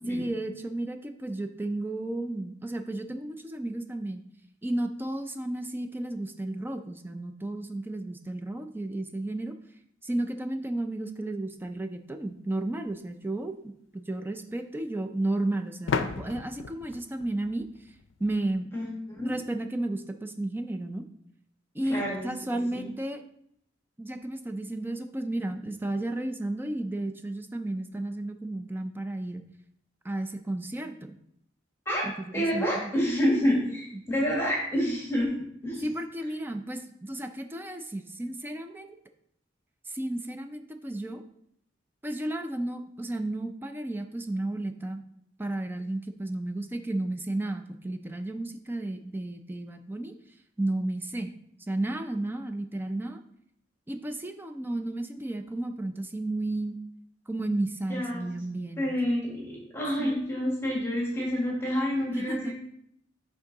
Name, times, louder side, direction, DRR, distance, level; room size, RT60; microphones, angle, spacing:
voice 1, 0.1-4.2 4.6-9.5 10.0-17.7 18.2-18.7 19.2-21.0 21.7-23.2 24.0-29.4 30.0-31.2 32.2-32.9 33.9-34.0 35.8-39.0 39.9-41.2 42.0-45.0 45.4-50.2 50.6-51.3 51.6-53.2 53.9-56.8 57.3-58.9 60.0-60.2 62.1-62.5, right 1 dB, 10° right, 6 dB, 0.4 m, -33 dB
sound 1, 12.9-13.0 15.9-18.5, left 5 dB, 90° left, 0.5 m, -34 dB
voice 2, 18.7-19.3 21.9-22.8 31.8-35.3 35.6-35.9 57.9-58.3 58.8-62.5, equal, 15° left, -3 dB, 1.6 m, -28 dB
9.8 x 3.6 x 3.8 m, 0.72 s
head